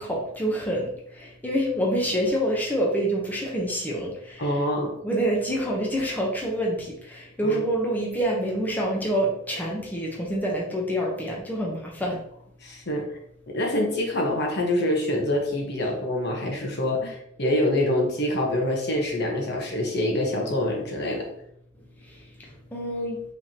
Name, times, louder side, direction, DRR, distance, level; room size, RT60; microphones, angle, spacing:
voice 1, 0.0-4.4 5.0-12.2 22.0-23.2, right 1 dB, 10° left, -3 dB, 0.8 m, -27 dB
voice 2, 4.4-4.9 7.4-7.6 12.6-13.0 13.5-21.2, left 1 dB, 60° left, 0 dB, 1.1 m, -25 dB
5.4 x 3.4 x 2.8 m, 0.72 s
head